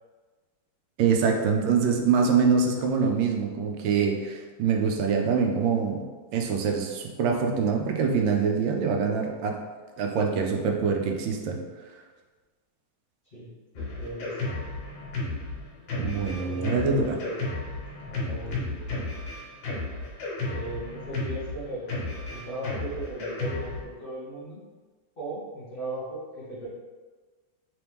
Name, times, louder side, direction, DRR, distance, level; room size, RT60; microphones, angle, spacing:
voice 1, 1.0-6.0 6.3-9.6 10.0-11.6 16.0-17.2, right 5 dB, 90° right, 3 dB, 1.3 m, -24 dB
voice 2, 13.3-14.6 16.2-17.4 18.0-18.9 20.5-21.9 22.3-24.6 25.2-26.7, right 1 dB, 45° left, -8 dB, 0.7 m, -37 dB
Drum kit, 13.8-23.8, left 2 dB, 85° left, 1.8 m, -33 dB
3.9 x 3.0 x 3.4 m, 1.4 s
omnidirectional pair, 2.0 m